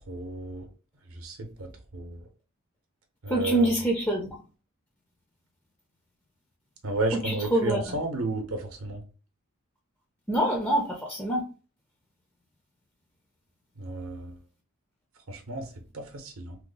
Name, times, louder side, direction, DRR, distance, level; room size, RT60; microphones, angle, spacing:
voice 1, 0.1-0.7 1.1-2.2 3.2-3.7 6.8-9.0 13.8-14.4 15.3-16.6, right 2 dB, 70° right, 3 dB, 0.7 m, -33 dB
voice 2, 3.3-4.3 7.2-8.0 10.3-11.4, right 1 dB, 10° left, -1 dB, 0.5 m, -25 dB
3.0 x 2.0 x 3.7 m, 0.35 s
head